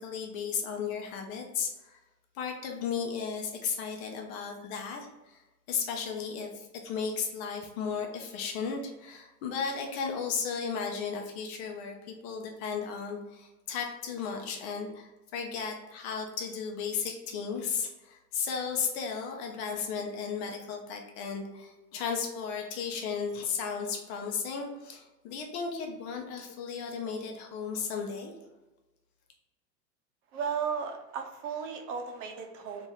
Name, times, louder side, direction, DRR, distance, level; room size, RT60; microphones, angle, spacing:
voice 1, 0.0-2.0 2.3-5.4 5.7-28.3, left 6 dB, 40° left, 2 dB, 0.7 m, -35 dB
voice 2, 30.3-32.9, right 6 dB, 50° right, 3 dB, 0.7 m, -35 dB
2.8 x 2.6 x 4.0 m, 1.0 s
hypercardioid pair, 105°, 50 cm